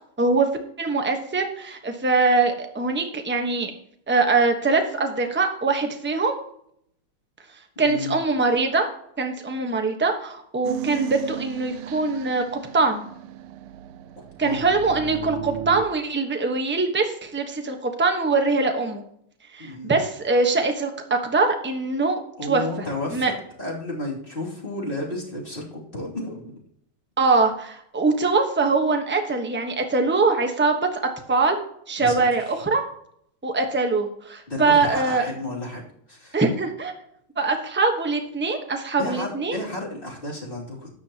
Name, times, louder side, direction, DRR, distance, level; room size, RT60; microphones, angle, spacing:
voice 1, 0.2-0.5 0.8-3.7 4.1-6.4 7.8-8.9 9.2-13.1 14.4-19.0 19.5-22.2 22.5-22.6 23.1-23.3 27.2-31.0 31.3-31.6 31.9-32.8 33.4-35.2 36.3-36.9 37.4-39.6, right 3 dB, 10° right, 4 dB, 0.6 m, -22 dB
voice 2, 7.8-8.2 14.2-14.6 19.6-19.9 22.4-23.2 23.6-26.6 32.0-32.5 34.5-36.4 39.0-40.9, left 2 dB, 25° left, -3 dB, 2.8 m, -32 dB
sound 1, 10.6-15.8, right 11 dB, 85° right, 1.5 m, -35 dB
13.0 x 9.8 x 2.9 m, 0.69 s
omnidirectional pair, 2.3 m